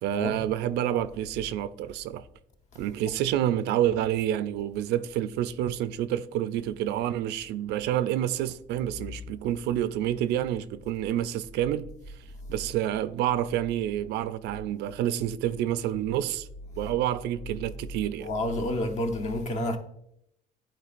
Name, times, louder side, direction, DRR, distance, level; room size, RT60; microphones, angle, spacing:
voice 1, 0.0-2.2 2.8-11.9 12.5-16.5 16.8-18.3, right 11 dB, 80° right, 0.4 m, -28 dB
voice 2, 18.2-19.8, left 1 dB, 45° left, 0.8 m, -29 dB
11.0 x 4.3 x 2.5 m
cardioid pair, 110°, 17 cm